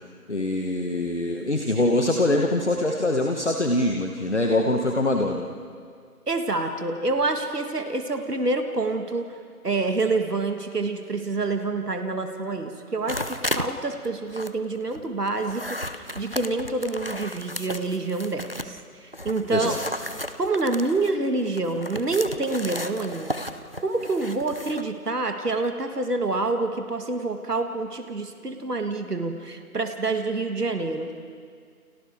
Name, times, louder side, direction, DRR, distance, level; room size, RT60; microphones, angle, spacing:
voice 1, 0.3-5.5 19.5-19.8, left 1 dB, 50° left, 2 dB, 1.4 m, -23 dB
voice 2, 6.3-9.3 9.6-19.8 20.4-23.3 23.8-31.1, right 3 dB, 85° right, 5 dB, 1.9 m, -27 dB
sound 1, 13.1-13.7 14.0-18.8 19.1-24.9, left 1 dB, 40° right, 0.6 m, -34 dB
29.5 x 29.5 x 3.6 m, 2.1 s
figure-of-eight pair, 180°, 46 cm